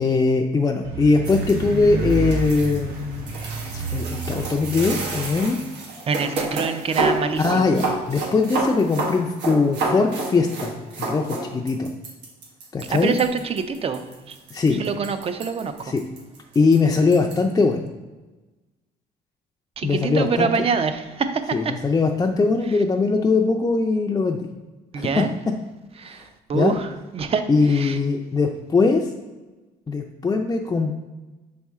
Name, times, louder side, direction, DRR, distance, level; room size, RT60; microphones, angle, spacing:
voice 1, 0.0-3.3 3.7-5.6 7.4-10.7 11.0-11.9 12.7-13.1 14.5-14.8 15.8-16.0 16.5-17.9 19.8-20.5 21.5-24.5 25.0-25.2 26.2-26.3 26.5-26.8 27.5-29.1 29.9-31.1, left 4 dB, 20° left, 2 dB, 0.5 m, -21 dB
sound 1, 0.8-5.4, right 3 dB, 70° right, 1.2 m, -30 dB
sound 2, 1.2-17.4, right 3 dB, 85° right, 1.5 m, -30 dB
voice 2, 6.1-7.7 12.9-14.4 14.8-15.9 19.8-21.6 24.9-25.3 26.0-26.2 26.5-26.9 27.1-28.0, right 5 dB, 35° right, 9 dB, 0.6 m, -25 dB
6.2 x 4.3 x 3.6 m, 1.2 s
cardioid pair, 110°, 17 cm